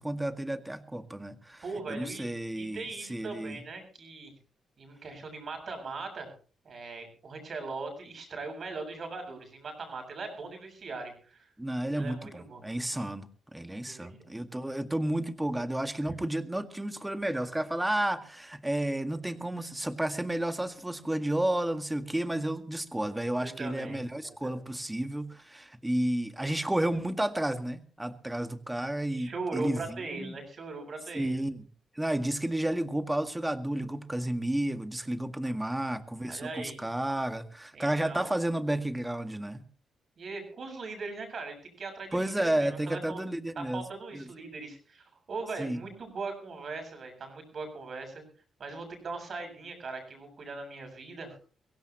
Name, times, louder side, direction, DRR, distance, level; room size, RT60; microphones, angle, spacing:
voice 1, 0.0-2.8 3.1-3.6 11.6-30.4 31.1-31.6 31.9-39.6 42.1-43.8 44.1-44.3 45.6-45.8, right 1 dB, 10° right, 8 dB, 1.8 m, -32 dB
voice 2, 1.6-4.3 4.8-6.3 6.6-11.5 11.9-12.6 13.8-14.1 23.4-24.6 29.1-31.4 35.4-35.9 36.3-36.8 37.7-38.3 40.2-43.2 43.6-48.2 48.6-51.3, right 3 dB, 55° right, 5 dB, 7.8 m, -40 dB
23.5 x 16.5 x 3.0 m, 0.41 s
cardioid pair, 80°, 0 cm